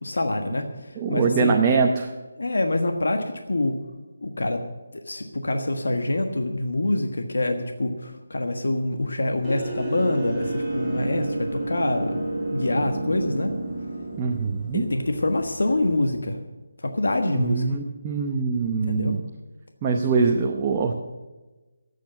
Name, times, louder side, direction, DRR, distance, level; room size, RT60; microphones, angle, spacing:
voice 1, 0.0-1.6 2.4-3.8 4.2-4.6 4.9-13.5 14.7-16.4 16.8-17.6 18.8-19.2, left 2 dB, 80° left, 5 dB, 1.4 m, -26 dB
voice 2, 1.0-2.1 14.2-14.8 17.3-19.2 19.8-20.9, right 5 dB, 20° right, 1 dB, 0.8 m, -23 dB
sound 1, 9.4-16.0, right 2 dB, ahead, 3.4 m, -31 dB
13.0 x 8.4 x 8.9 m, 1.2 s
figure-of-eight pair, 165°, 0 cm